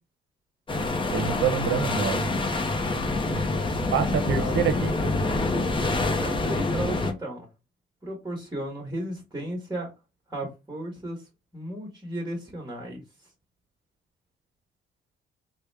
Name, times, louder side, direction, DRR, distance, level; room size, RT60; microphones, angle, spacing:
sound 1, 0.7-7.1, left 2 dB, 25° left, 0.6 m, -26 dB
voice 1, 1.1-2.3 3.9-4.9, right 8 dB, 75° right, 0.7 m, -26 dB
voice 2, 4.2-4.6 5.8-7.5 8.0-9.9 10.3-11.2 11.5-13.0, right 1 dB, 15° right, 1.3 m, -34 dB
3.3 x 2.1 x 3.3 m
cardioid pair, 90°, 20 cm